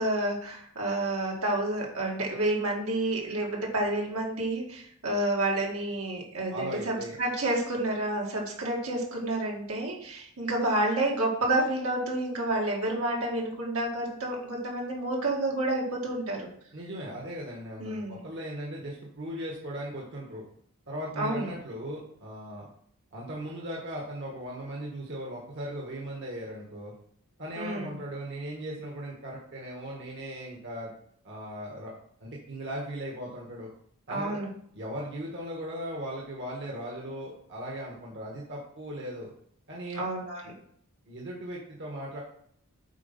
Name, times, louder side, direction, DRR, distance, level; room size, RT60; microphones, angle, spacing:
voice 1, 0.0-16.5 17.8-18.2 21.2-21.5 27.6-28.0 34.1-34.5 39.9-40.5, right 1 dB, 80° right, -2 dB, 2.3 m, -29 dB
voice 2, 6.5-7.2 16.7-20.4 20.9-22.7 23.1-26.9 27.4-30.9 31.2-31.9 32.2-33.7 34.1-34.4 34.7-39.3 39.7-40.0 41.1-42.2, right 1 dB, 55° right, -2 dB, 1.6 m, -38 dB
8.3 x 4.1 x 5.4 m, 0.65 s
head